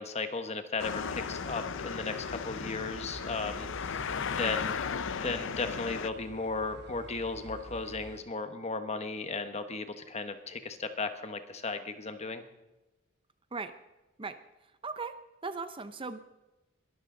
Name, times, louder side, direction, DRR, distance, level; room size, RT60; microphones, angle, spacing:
voice 1, 0.0-4.8 5.2-12.4, left 3 dB, 30° left, 9 dB, 1.2 m, -36 dB
sound 1, 0.8-6.1, left 6 dB, 65° left, 0.6 m, -36 dB
sound 2, 1.1-8.2, right 2 dB, 55° right, 0.9 m, -49 dB
voice 2, 14.2-16.2, right 4 dB, 25° right, 11 dB, 0.7 m, -39 dB
22.0 x 13.0 x 3.9 m, 1.0 s
head